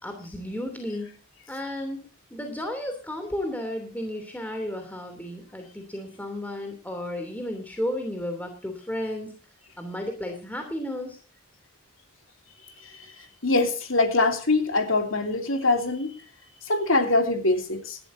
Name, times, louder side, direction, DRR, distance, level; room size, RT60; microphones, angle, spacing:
voice 1, 0.0-1.2 1.5-9.3 9.8-11.2, left 1 dB, 10° left, 4 dB, 3.0 m, -33 dB
voice 2, 12.8-13.1 13.4-16.2 16.7-18.0, left 2 dB, 70° left, 5 dB, 2.9 m, -23 dB
20.0 x 13.0 x 2.7 m, 0.35 s
head